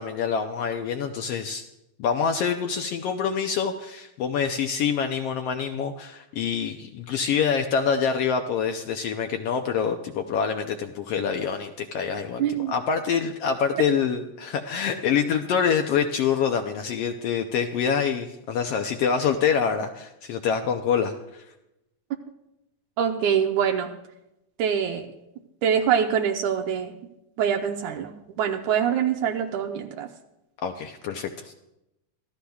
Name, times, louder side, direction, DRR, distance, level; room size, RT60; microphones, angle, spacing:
voice 1, 0.0-1.6 2.0-21.4 30.6-31.5, left 7 dB, 75° left, 5 dB, 1.4 m, -26 dB
voice 2, 12.4-12.7 23.0-23.9 24.6-25.1 25.6-26.9 27.4-30.1, right 8 dB, 80° right, 4 dB, 2.2 m, -24 dB
24.5 x 14.5 x 2.3 m, 0.87 s
omnidirectional pair, 3.4 m